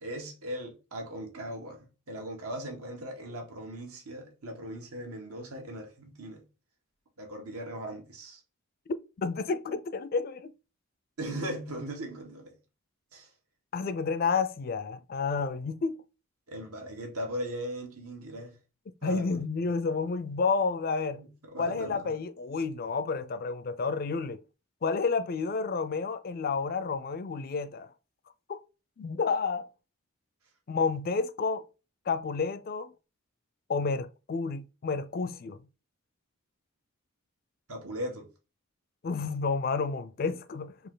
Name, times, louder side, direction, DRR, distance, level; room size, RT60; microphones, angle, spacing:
voice 1, 0.0-6.4 7.2-8.4 11.2-12.5 13.1-13.3 16.5-18.5 19.0-19.4 21.2-22.1 37.7-38.3, equal, 85° right, 1.6 m, -38 dB
voice 2, 9.2-10.5 13.7-16.0 19.0-21.2 21.6-24.4 24.8-27.9 28.5-28.6 29.0-29.7 30.7-31.6 32.1-32.9 33.7-35.6 39.0-40.7, left 4 dB, 40° left, 0.3 m, -30 dB
4.3 x 2.8 x 3.8 m
head